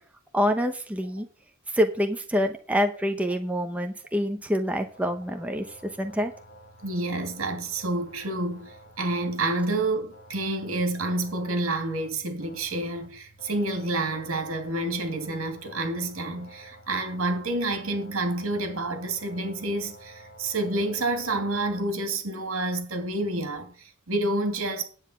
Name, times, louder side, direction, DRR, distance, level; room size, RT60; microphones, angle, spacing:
voice 1, 0.3-1.3 1.7-5.6 6.0-6.3, equal, 5° right, 0.9 m, -26 dB
sound 1, 4.7-21.8, right 1 dB, 50° left, 2.1 m, -50 dB
voice 2, 6.8-24.8, right 2 dB, 85° right, 2.7 m, -29 dB
9.8 x 8.3 x 5.7 m
head